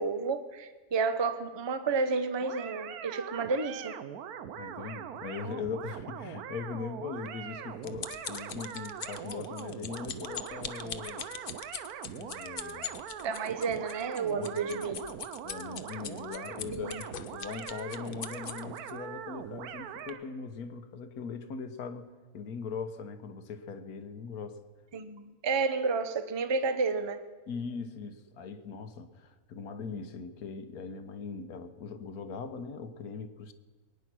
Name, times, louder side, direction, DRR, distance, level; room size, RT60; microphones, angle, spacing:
voice 1, 0.0-4.0 13.2-15.0 16.7-17.0 24.9-27.2, right 4 dB, 30° right, 10 dB, 0.5 m, -31 dB
sound 1, 2.4-20.2, right 9 dB, 90° right, 1.3 m, -42 dB
voice 2, 4.6-11.3 12.1-13.0 14.3-14.9 15.4-24.6 27.5-33.5, left 5 dB, 80° left, 9 dB, 1.5 m, -40 dB
sound 2, 7.3-18.9 19.6-19.7 20.1-20.2, left 8 dB, 50° left, 0.7 m, -42 dB
22.5 x 9.6 x 6.1 m, 1.4 s
omnidirectional pair, 1.5 m